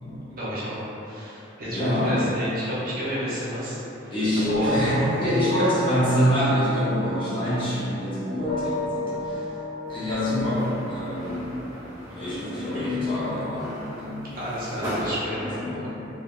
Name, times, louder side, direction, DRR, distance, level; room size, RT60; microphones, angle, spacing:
voice 1, 0.3-4.1 4.5-5.1 12.7-12.9 14.3-15.5, equal, 50° right, -9 dB, 0.7 m, -31 dB
voice 2, 1.7-2.2 4.1-9.6 9.9-11.5 12.1-14.3 15.4-15.9, equal, 25° left, -11 dB, 0.7 m, -26 dB
sound 1, 4.4-8.1 8.4-10.1, left 1 dB, 70° left, 0.7 m, -32 dB
sound 2, 9.9-15.3, equal, 15° right, 1.0 m, -38 dB
3.2 x 2.3 x 2.3 m, 3.0 s
head